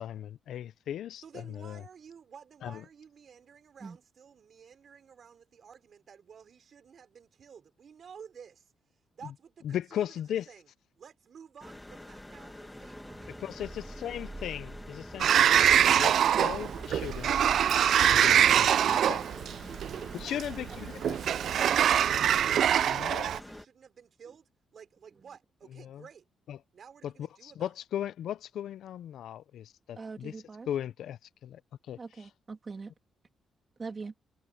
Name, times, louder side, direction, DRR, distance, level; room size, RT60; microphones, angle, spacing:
voice 1, 0.0-1.8 2.6-2.8 9.2-9.3 9.6-10.5 13.3-17.3 18.1-19.2 20.1-21.2 22.8-23.3 25.8-26.0 26.5-26.6 27.0-30.3 30.7-31.6 31.9-32.3, left 10 dB, 75° left, 0.5 m, -37 dB
voice 2, 1.2-8.7 9.1-10.7 11.0-13.4 19.6-26.3 26.7-27.7, right 7 dB, 45° right, 5.3 m, -52 dB
sound 1, 11.6-23.7, left 1 dB, 10° left, 1.6 m, -47 dB
sound 2, 12.7-17.7, right 2 dB, 10° right, 1.2 m, -47 dB
Sliding door, 15.2-23.4, right 9 dB, 65° right, 0.3 m, -24 dB
voice 3, 30.0-30.7 32.0-32.9 33.8-34.1, right 4 dB, 30° right, 2.0 m, -42 dB
cardioid pair, 150°, 0 cm